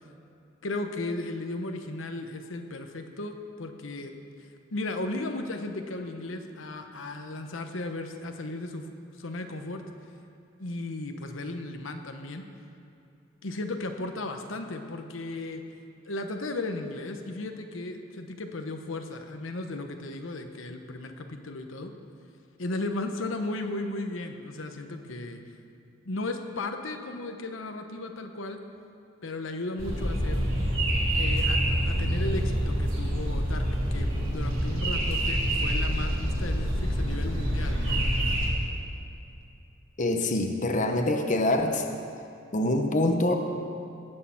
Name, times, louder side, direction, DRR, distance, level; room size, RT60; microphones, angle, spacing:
voice 1, 0.6-4.1 4.7-8.9 9.2-9.8 10.6-12.4 13.4-15.6 16.0-21.9 22.6-25.4 26.0-28.6 29.2-30.5 31.1-38.0, left 2 dB, 75° left, 5 dB, 1.0 m, -35 dB
sound 1, 29.8-38.5, equal, 80° right, 3.3 m, -26 dB
voice 2, 40.0-41.8 42.5-43.4, left 1 dB, 40° left, 4 dB, 1.0 m, -25 dB
18.5 x 6.6 x 7.2 m, 2.7 s
head